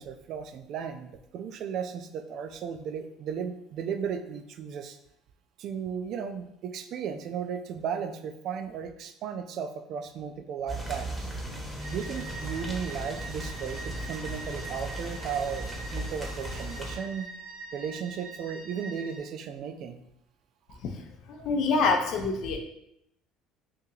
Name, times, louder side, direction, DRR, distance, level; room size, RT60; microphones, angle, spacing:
voice 1, 0.0-5.0 5.6-11.3 11.9-17.3 17.7-20.0 21.4-21.5, right 7 dB, 60° right, 8 dB, 0.4 m, -35 dB
sound 1, 10.7-17.0, right 1 dB, 5° right, 0.9 m, -37 dB
sound 2, 11.8-19.2, right 3 dB, 75° right, 0.9 m, -44 dB
voice 2, 21.3-22.6, left 4 dB, 65° left, 3 dB, 0.6 m, -26 dB
2.9 x 2.7 x 3.7 m, 0.79 s
supercardioid pair, 90°, 0 cm